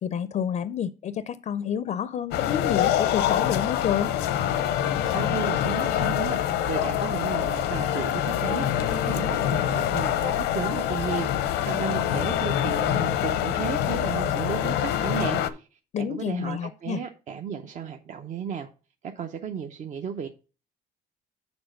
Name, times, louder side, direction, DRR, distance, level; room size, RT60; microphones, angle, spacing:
voice 1, 0.0-4.1 15.9-17.0, left 9 dB, 45° left, 0.5 m, -29 dB
sound 1, 2.3-15.5, left 10 dB, 90° left, 0.7 m, -25 dB
voice 2, 5.0-18.7 19.0-20.3, right 7 dB, 45° right, 0.7 m, -34 dB
7.0 x 4.0 x 6.5 m
cardioid pair, 110°, 17 cm